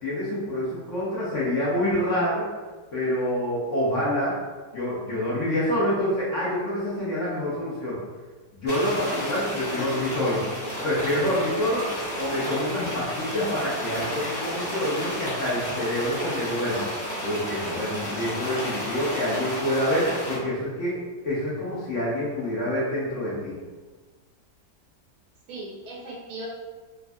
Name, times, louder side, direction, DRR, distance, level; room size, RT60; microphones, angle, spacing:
voice 1, 0.0-2.5 2.9-4.3 4.7-8.0 8.5-10.4 10.8-11.9 12.2-16.9 17.2-23.5, left 1 dB, 55° left, -8 dB, 0.9 m, -27 dB
sound 1, 8.7-20.4, equal, 15° left, 1.1 m, -32 dB
voice 2, 9.7-10.7 25.5-26.5, right 1 dB, 70° right, -4 dB, 1.2 m, -39 dB
3.3 x 2.2 x 2.6 m, 1.3 s
omnidirectional pair, 1.8 m